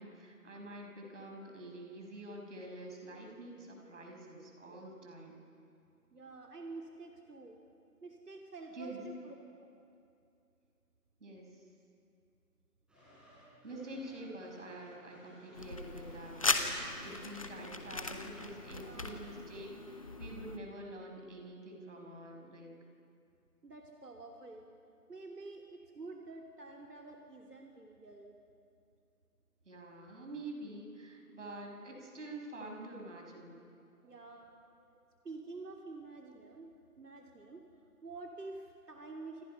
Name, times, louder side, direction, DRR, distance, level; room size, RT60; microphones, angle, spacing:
voice 1, 0.0-5.4 8.7-9.0 11.2-11.6 13.6-22.7 29.6-33.6, right 1 dB, 50° right, 1 dB, 6.0 m, -47 dB
voice 2, 6.1-7.6 8.0-9.3 9.6-9.7 12.9-13.0 18.7-19.2 23.6-24.7 25.1-28.4 34.0-37.6 38.0-39.4, right 3 dB, 80° right, 1 dB, 3.2 m, -49 dB
sound 1, 12.9-19.2, equal, ahead, 6.3 m, -59 dB
sound 2, 15.6-20.6, left 3 dB, 20° left, 1.0 m, -38 dB
29.0 x 28.5 x 5.7 m, 2.5 s
figure-of-eight pair, 160°, 46 cm